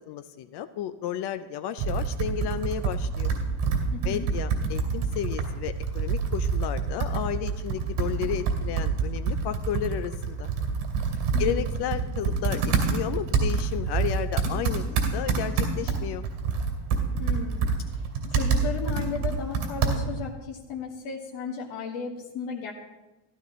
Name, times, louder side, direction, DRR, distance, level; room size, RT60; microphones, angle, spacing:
voice 1, 0.1-3.3 4.0-10.5 11.4-16.3, left 10 dB, 55° left, 11 dB, 0.5 m, -33 dB
Computer keyboard, 1.8-20.3, right 5 dB, 85° right, 2.6 m, -27 dB
voice 2, 3.9-4.3 11.3-11.7 17.2-17.6 18.3-22.7, left 6 dB, 85° left, -2 dB, 1.7 m, -35 dB
14.5 x 12.0 x 3.0 m, 1.1 s
cardioid pair, 140°, 50 cm